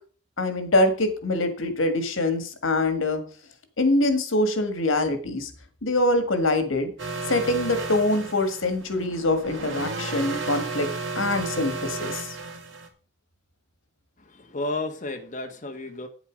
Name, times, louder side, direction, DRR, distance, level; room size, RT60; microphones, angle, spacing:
voice 1, 0.4-3.2 3.8-5.5 5.8-6.9 7.3-10.9 11.2-12.4, left 2 dB, 85° left, 9 dB, 1.8 m, -24 dB
sound 1, 7.0-12.9, right 3 dB, 70° right, 2.5 m, -33 dB
voice 2, 14.2-16.1, left 2 dB, 40° left, 3 dB, 1.3 m, -32 dB
9.1 x 8.1 x 5.1 m, 0.41 s
head